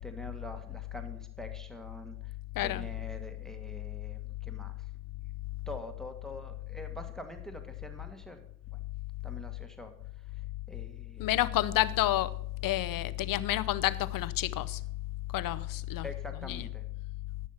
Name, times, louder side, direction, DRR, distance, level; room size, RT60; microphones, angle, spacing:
voice 1, 0.0-2.3 2.6-4.9 5.7-8.4 8.7-8.8 9.2-11.3 16.0-16.8, left 1 dB, ahead, 1.6 m, -45 dB
voice 2, 2.6-2.9 11.2-12.3 12.6-14.8 15.3-16.1 16.4-16.7, left 14 dB, 60° left, 0.8 m, -29 dB
13.0 x 6.4 x 5.7 m
supercardioid pair, 70°, 38 cm